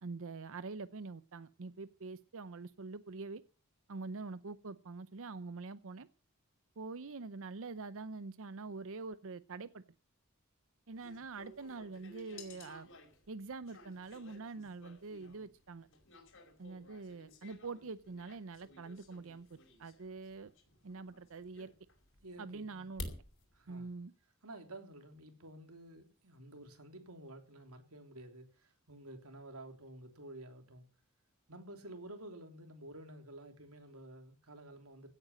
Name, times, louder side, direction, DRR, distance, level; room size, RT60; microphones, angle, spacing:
voice 1, 0.0-3.4 3.9-6.1 6.8-9.8 10.9-12.9 13.3-15.9 16.6-20.5 20.8-21.7 22.4-23.1 23.7-24.1, right 3 dB, 65° right, 0.7 m, -45 dB
sound 1, 10.9-23.9, left 2 dB, 65° left, 5.1 m, -54 dB
voice 2, 22.2-22.8 23.5-23.9 24.4-30.9 31.5-35.1, right 1 dB, 85° right, 3.3 m, -51 dB
16.5 x 9.0 x 7.5 m
head